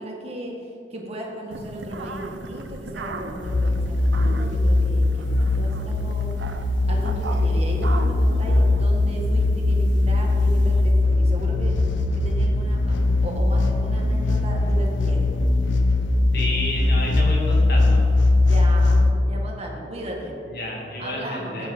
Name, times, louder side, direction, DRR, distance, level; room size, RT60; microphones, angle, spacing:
voice 1, 0.0-6.3 6.9-11.7 12.1-13.0 13.2-15.6 18.4-20.3 21.0-21.7, right 1 dB, 35° right, -1 dB, 1.7 m, -35 dB
sound 1, 1.5-10.9, right 2 dB, 80° right, 0.7 m, -38 dB
sound 2, 3.4-19.1, left 2 dB, 85° left, 0.8 m, -20 dB
voice 2, 16.3-18.0 20.5-21.7, left 1 dB, 55° left, -3 dB, 2.4 m, -30 dB
14.0 x 8.0 x 4.4 m, 2.6 s
head